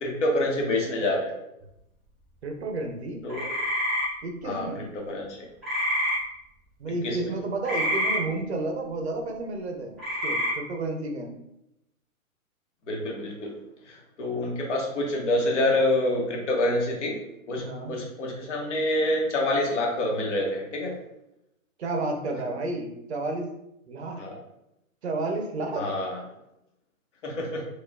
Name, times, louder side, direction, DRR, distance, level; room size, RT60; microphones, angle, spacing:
voice 1, 0.0-1.3 3.2-3.5 4.4-5.5 7.0-7.2 12.9-13.5 13.9-17.2 17.5-17.6 17.9-20.9 24.2-24.3 25.7-26.2 27.2-27.7, left 1 dB, 55° left, 0 dB, 1.0 m, -27 dB
voice 2, 2.4-3.2 4.2-4.9 6.8-11.3 14.3-14.5 17.6-17.9 21.8-23.5 23.9-24.2 25.0-25.9, right 2 dB, 50° right, 3 dB, 0.6 m, -31 dB
sound 1, 3.3-4.1 5.6-6.2 7.6-8.2 10.0-10.5, equal, ahead, 0.3 m, -26 dB
4.2 x 2.4 x 2.3 m, 0.84 s
hypercardioid pair, 170°, 42 cm